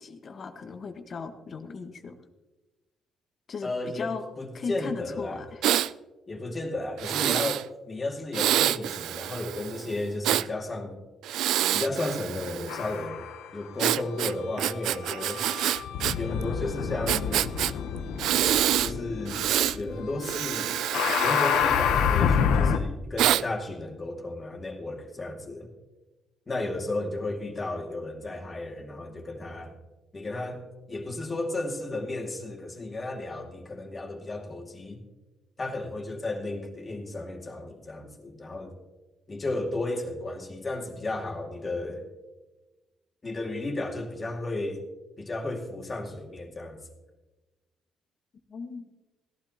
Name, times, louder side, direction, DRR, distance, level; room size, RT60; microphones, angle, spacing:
voice 1, 0.0-2.2 3.5-4.2 4.5-5.7 48.5-48.9, left 5 dB, 50° left, 6 dB, 1.4 m, -37 dB
voice 2, 3.6-5.4 6.3-11.0 11.7-13.3 13.5-15.4 16.1-17.5 18.8-19.4 19.8-20.8 21.2-25.7 26.5-29.7 30.1-35.0 35.6-38.7 39.3-42.0 43.2-44.8 45.2-46.8, left 2 dB, 30° left, 1 dB, 2.4 m, -33 dB
Breathing, 5.6-5.9 7.0-7.6 8.3-10.5 11.2-12.9 13.8-16.2 16.4-16.5 17.1-17.7 18.2-18.9 19.3-19.8 20.2-22.4 23.2-23.4, right 12 dB, 85° right, 0.3 m, -27 dB
sound 1, 12.7-13.5 14.3-22.8, left 7 dB, 85° left, 0.9 m, -28 dB
17.0 x 12.0 x 2.9 m, 1.1 s
cardioid pair, 90°, 0 cm